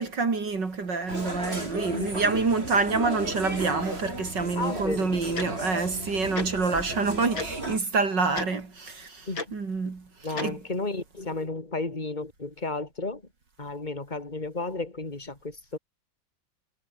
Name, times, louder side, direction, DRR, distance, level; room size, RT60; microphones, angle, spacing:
voice 1, 0.0-10.6, right 4 dB, 65° right, 3.7 m, -27 dB
sound 1, 1.1-7.8, right 1 dB, 30° right, 8.1 m, -35 dB
voice 2, 1.7-2.2 4.6-5.0 9.3-9.4 10.2-13.2 13.6-15.8, left 3 dB, 20° left, 3.4 m, -33 dB
Tick-tock, 5.3-5.5 6.3-6.5 7.4-7.5 8.3-8.5 9.3-9.5 10.4-10.5, left 3 dB, 85° left, 5.6 m, -32 dB
omnidirectional pair, 2.1 m